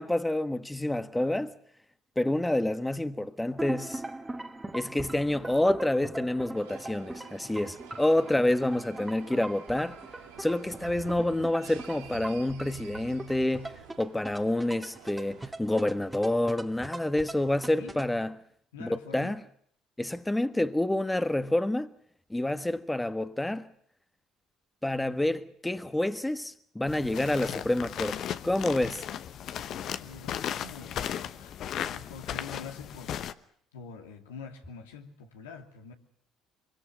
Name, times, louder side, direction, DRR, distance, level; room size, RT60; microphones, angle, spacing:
voice 1, 0.0-1.5 2.2-4.0 4.7-10.0 10.4-18.3 18.8-19.4 20.0-21.9 22.3-23.7 24.8-28.2 28.4-29.0, left 1 dB, 10° left, 1.4 m, -28 dB
sound 1, 3.6-18.2, right 2 dB, 15° right, 1.9 m, -41 dB
sound 2, 6.5-15.6, right 9 dB, 85° right, 2.1 m, -49 dB
voice 2, 17.5-18.0 18.7-19.4 30.0-33.4 33.7-35.9, left 5 dB, 90° left, 2.6 m, -46 dB
sound 3, 26.9-33.3, left 10 dB, 60° left, 1.0 m, -36 dB
24.0 x 23.5 x 6.5 m
hypercardioid pair, 60°, 0 cm